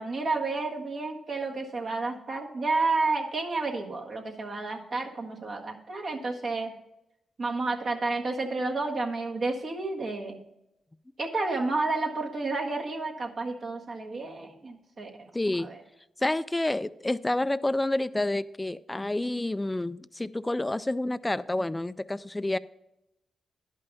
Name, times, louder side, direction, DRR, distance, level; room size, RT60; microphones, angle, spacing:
voice 1, 0.0-6.7 7.4-10.4 11.2-15.3 15.6-15.8, right 3 dB, 55° right, 1 dB, 1.6 m, -31 dB
voice 2, 15.3-15.7 16.2-22.6, left 1 dB, 15° left, 16 dB, 0.3 m, -29 dB
11.0 x 5.5 x 5.3 m, 0.88 s
cardioid pair, 70°, 0 cm